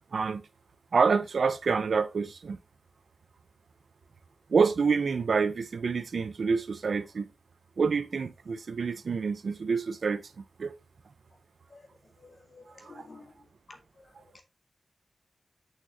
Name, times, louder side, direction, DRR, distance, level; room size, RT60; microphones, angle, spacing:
voice 1, 0.1-0.4 0.9-2.6 4.5-7.3 7.8-10.3 10.6-10.7 12.8-13.0, right 5 dB, 70° right, 0.8 m, -27 dB
voice 2, 12.2-13.3 13.7-13.8 14.3-14.4, left 3 dB, 55° left, 2.0 m, -50 dB
8.4 x 6.4 x 2.8 m
wide cardioid pair, 130°, 0 cm